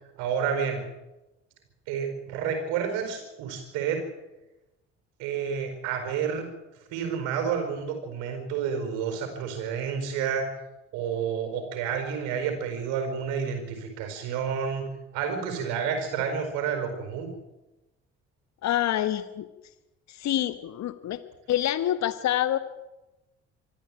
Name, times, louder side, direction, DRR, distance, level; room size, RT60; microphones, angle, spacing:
voice 1, 0.2-0.8 1.9-4.0 5.2-6.5 6.9-10.5 10.9-14.9 15.1-17.3, right 7 dB, 75° right, 5 dB, 4.8 m, -30 dB
voice 2, 18.6-19.5 20.1-21.2 21.5-22.6, left 12 dB, 60° left, 12 dB, 1.4 m, -26 dB
24.5 x 13.5 x 8.8 m, 1.0 s
hypercardioid pair, 55°, 31 cm